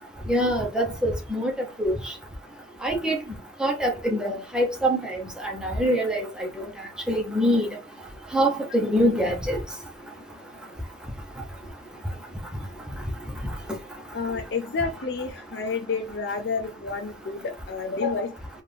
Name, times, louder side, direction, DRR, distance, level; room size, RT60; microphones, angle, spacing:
voice 1, 0.3-1.5 1.8-1.9 2.8-3.2 3.6-6.7 7.1-7.7 8.3-9.6, equal, 5° right, 1.0 m, -24 dB
voice 2, 14.1-18.4, left 4 dB, 75° left, 0.5 m, -29 dB
4.2 x 2.5 x 3.5 m
head